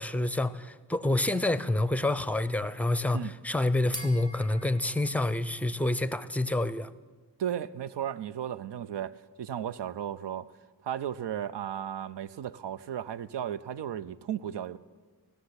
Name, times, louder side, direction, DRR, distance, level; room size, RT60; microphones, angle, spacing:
voice 1, 0.0-6.9, left 2 dB, 5° left, 0.5 m, -28 dB
sound 1, 1.7-6.6, right 1 dB, 30° right, 2.2 m, -49 dB
voice 2, 7.4-10.5 10.8-14.8, right 10 dB, 75° right, 0.6 m, -35 dB
16.0 x 6.7 x 9.7 m
cardioid pair, 50°, 42 cm